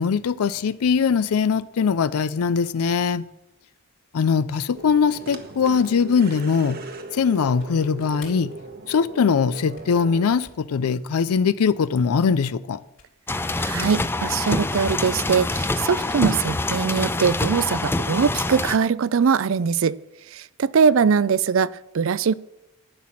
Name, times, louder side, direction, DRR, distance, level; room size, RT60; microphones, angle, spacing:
voice 1, 0.0-3.2 4.1-6.8 7.1-8.5 8.9-12.8, left 6 dB, 85° left, 0.4 m, -21 dB
sound 1, 4.7-10.3, right 2 dB, 45° right, 1.1 m, -39 dB
sound 2, 7.5-13.5 13.7-14.8, left 5 dB, 60° left, 3.6 m, -51 dB
sound 3, 13.3-18.8, left 2 dB, 10° left, 0.4 m, -25 dB
voice 2, 13.6-20.0 20.3-22.3, right 6 dB, 60° right, 0.4 m, -21 dB
11.5 x 5.9 x 8.7 m
head